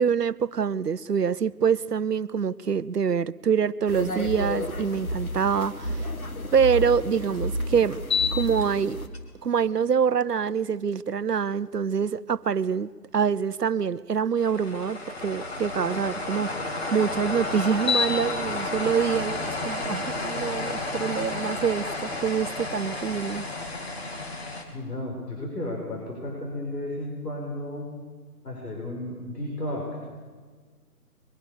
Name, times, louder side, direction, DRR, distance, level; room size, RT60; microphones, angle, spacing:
voice 1, 0.0-6.0 6.5-8.0 8.3-9.0 9.4-23.5, right 7 dB, 85° right, 0.8 m, -25 dB
sound 1, 3.9-9.1, equal, 65° left, 2.3 m, -31 dB
sound 2, 8.0-8.6 9.1-9.2 14.4-24.6, left 3 dB, 40° left, 3.0 m, -30 dB
voice 2, 24.7-27.9 28.4-30.0, left 1 dB, 80° left, 6.0 m, -33 dB
22.5 x 21.5 x 7.1 m
figure-of-eight pair, 160°, 47 cm